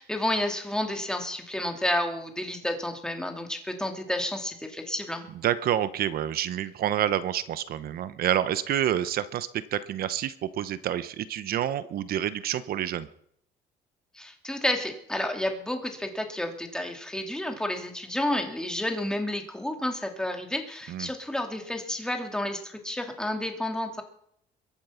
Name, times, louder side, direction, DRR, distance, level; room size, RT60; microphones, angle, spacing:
voice 1, 0.0-5.3 14.1-24.0, left 1 dB, 5° left, 4 dB, 2.5 m, -30 dB
voice 2, 5.4-13.1 20.9-21.1, right 11 dB, 65° right, 14 dB, 1.0 m, -28 dB
22.5 x 8.7 x 5.8 m, 0.68 s
cardioid pair, 110°, 17 cm